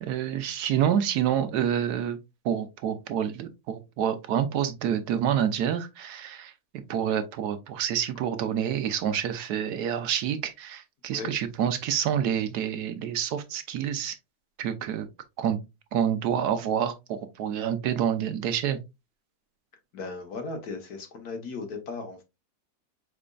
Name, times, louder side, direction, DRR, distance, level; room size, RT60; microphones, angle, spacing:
voice 1, 0.0-2.2 2.4-6.5 6.9-14.2 14.6-15.1 15.4-15.6 15.9-18.8, right 9 dB, 80° right, 1.3 m, -28 dB
voice 2, 19.9-22.2, left 4 dB, 75° left, 1.6 m, -36 dB
5.0 x 4.2 x 2.3 m
omnidirectional pair, 1.7 m